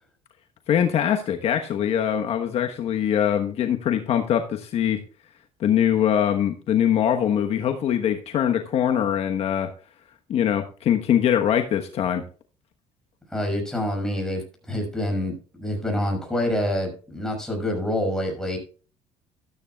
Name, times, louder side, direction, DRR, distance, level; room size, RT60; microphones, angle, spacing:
voice 1, 0.7-5.0 5.6-9.7 10.3-12.2, left 9 dB, 55° left, 6 dB, 1.2 m, -22 dB
voice 2, 13.3-18.6, left 1 dB, 5° left, 2 dB, 6.3 m, -27 dB
13.5 x 13.0 x 2.3 m, 0.37 s
cardioid pair, 115°, 12 cm